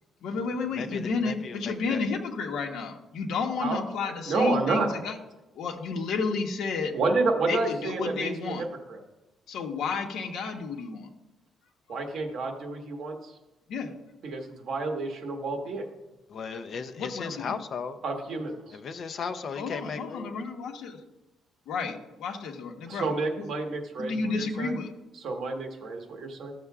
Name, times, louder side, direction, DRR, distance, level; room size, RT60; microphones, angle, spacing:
voice 1, 0.2-5.1 5.5-7.0 7.5-8.6 9.5-11.1 13.7-13.9 17.0-17.6 19.6-21.0 21.7-23.1 23.4-23.5 24.0-24.9, left 4 dB, 65° left, 1.1 m, -31 dB
voice 2, 0.7-2.0 16.3-18.0 18.7-20.4, left 5 dB, 40° left, 0.6 m, -36 dB
voice 3, 4.3-4.9 6.9-9.0 11.9-13.3 14.2-15.9 18.0-18.8 22.9-24.7 25.2-26.5, right 3 dB, 50° right, 1.3 m, -30 dB
14.0 x 6.7 x 2.4 m
cardioid pair, 165°, 0 cm